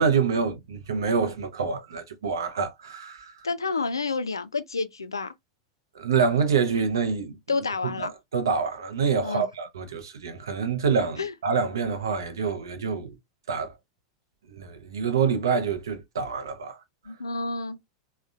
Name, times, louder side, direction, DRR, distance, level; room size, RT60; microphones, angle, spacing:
voice 1, 0.0-3.4 5.9-7.4 8.0-13.2 13.5-13.7 14.5-16.8, right 6 dB, 70° right, 0.6 m, -26 dB
voice 2, 3.4-5.3 7.5-8.1 9.2-9.5 11.2-11.3 17.1-17.8, left 4 dB, 80° left, 0.3 m, -29 dB
3.6 x 2.2 x 2.2 m
figure-of-eight pair, 90°, 2 cm